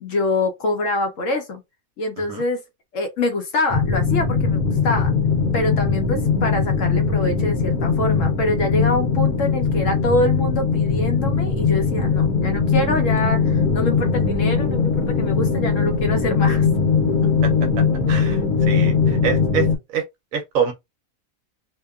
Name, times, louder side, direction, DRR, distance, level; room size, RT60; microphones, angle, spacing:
voice 1, 0.0-1.6 2.0-2.6 2.9-5.1 5.5-16.7, left 2 dB, 65° left, 0.9 m, -25 dB
sound 1, 3.7-19.8, left 5 dB, 90° left, 1.3 m, -20 dB
voice 2, 18.1-19.7 19.9-20.0 20.3-20.7, right 7 dB, 70° right, 0.9 m, -25 dB
2.8 x 2.2 x 2.3 m
omnidirectional pair, 1.6 m